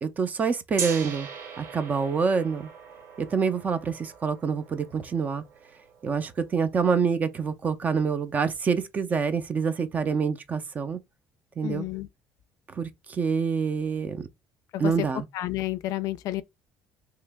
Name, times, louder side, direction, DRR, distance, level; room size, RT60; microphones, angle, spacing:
voice 1, 0.0-1.3 1.6-2.7 3.2-5.4 6.0-11.0 11.6-11.9 12.7-14.2 14.8-15.3, right 5 dB, 25° right, 0.5 m, -26 dB
Gong, 0.8-6.7, right 6 dB, 55° right, 1.0 m, -40 dB
voice 2, 11.6-12.1 14.7-15.1 15.3-16.4, left 15 dB, 65° left, 0.4 m, -30 dB
3.2 x 2.9 x 3.4 m
cardioid pair, 155°, 6 cm